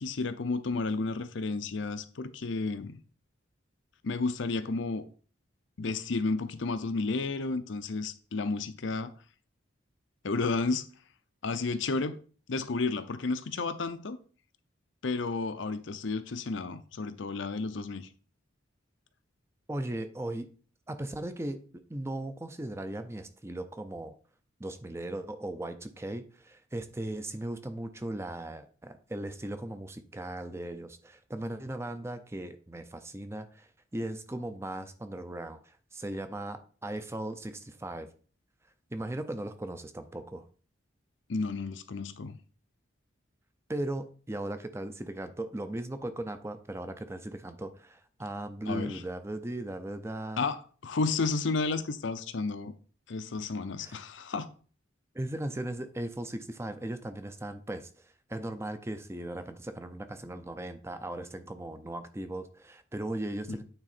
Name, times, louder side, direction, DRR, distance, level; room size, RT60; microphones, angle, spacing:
voice 1, 0.0-3.0 4.0-5.0 5.8-9.1 10.2-10.9 11.4-12.2 12.5-14.2 15.0-18.1 41.3-42.4 48.7-49.0 50.4-50.6 50.8-52.7 53.1-54.5 63.5-63.6, left 3 dB, 70° left, 0.6 m, -32 dB
voice 2, 19.7-20.5 20.9-21.6 21.9-24.1 24.6-38.1 38.9-40.4 43.7-50.4 53.8-54.0 55.1-63.6, right 1 dB, 15° right, 0.5 m, -38 dB
8.9 x 3.7 x 4.3 m
head